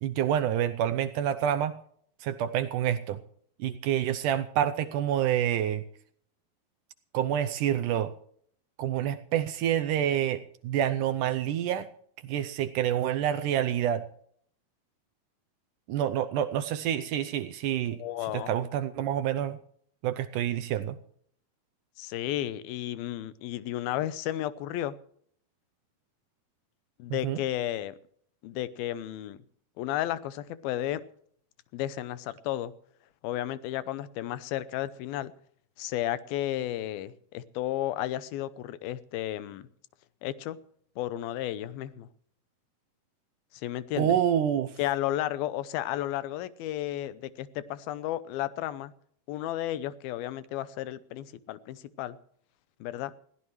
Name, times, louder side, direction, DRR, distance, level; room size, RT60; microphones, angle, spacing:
voice 1, 0.0-1.8 2.2-3.2 3.6-5.8 7.1-8.1 8.8-11.9 12.2-14.0 15.9-18.0 18.3-19.6 20.0-21.0 27.1-27.4 44.0-44.7, right 10 dB, 75° right, 11 dB, 2.0 m, -27 dB
voice 2, 18.0-18.5 22.0-24.9 27.0-28.0 28.4-29.4 29.8-31.0 31.7-32.7 33.2-35.3 35.8-39.7 40.2-40.6 41.0-42.1 43.5-44.2 44.8-48.9 49.3-52.2 52.8-53.1, left 13 dB, 85° left, 15 dB, 2.7 m, -33 dB
21.0 x 15.5 x 3.1 m, 0.62 s
omnidirectional pair, 4.2 m